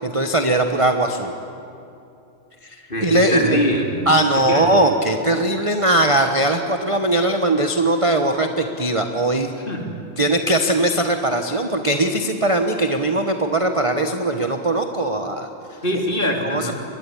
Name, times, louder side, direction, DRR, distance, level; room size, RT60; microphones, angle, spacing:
voice 1, 0.0-1.3 2.6-3.6 4.1-9.5 10.2-15.8 16.4-16.7, right 1 dB, 25° right, 5 dB, 0.7 m, -20 dB
voice 2, 2.9-4.7 9.6-9.9 15.8-16.7, equal, 25° left, 1 dB, 3.3 m, -23 dB
23.0 x 22.0 x 9.9 m, 2.7 s
omnidirectional pair, 2.3 m